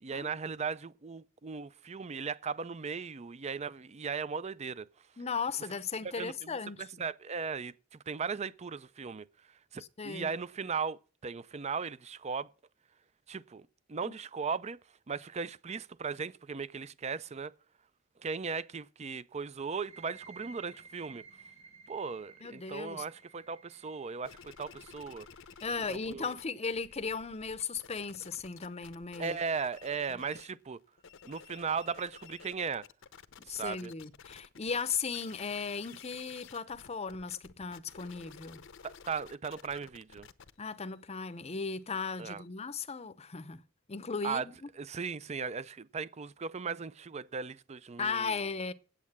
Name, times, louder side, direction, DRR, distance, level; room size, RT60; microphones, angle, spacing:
voice 1, 0.0-4.9 6.0-12.5 13.3-14.8 15.1-17.5 18.2-21.2 21.9-25.3 25.9-26.3 29.2-30.8 31.2-32.9 33.4-33.9 38.8-40.3 42.2-42.4 44.2-44.5 44.7-48.4, right 5 dB, 30° right, 0.5 m, -37 dB
voice 2, 5.2-6.8 10.0-10.3 14.0-14.1 22.4-23.0 25.6-29.4 33.5-38.6 40.6-43.6 43.9-44.5 48.0-48.7, left 5 dB, 30° left, 0.7 m, -36 dB
sound 1, 19.7-27.2, right 5 dB, 90° right, 4.6 m, -57 dB
sound 2, 24.2-26.4 26.7-30.5 30.9-42.5, left 7 dB, 65° left, 0.7 m, -53 dB
8.8 x 8.3 x 7.2 m
head